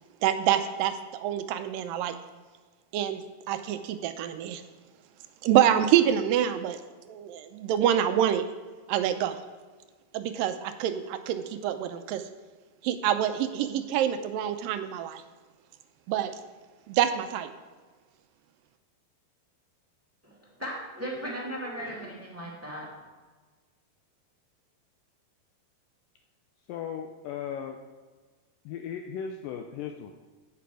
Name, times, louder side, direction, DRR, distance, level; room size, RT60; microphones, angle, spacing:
voice 1, 0.2-2.2 2.9-3.2 3.5-4.6 5.4-6.8 7.1-8.4 8.9-9.4 10.1-12.2 12.8-15.2 16.1-16.3 16.9-17.5, right 10 dB, 80° right, 9 dB, 2.2 m, -26 dB
voice 2, 20.2-22.9, equal, 10° right, -4 dB, 1.0 m, -37 dB
voice 3, 26.7-27.8 28.7-30.1, left 8 dB, 80° left, 4 dB, 2.1 m, -36 dB
16.0 x 6.0 x 4.8 m, 1.3 s
omnidirectional pair, 4.3 m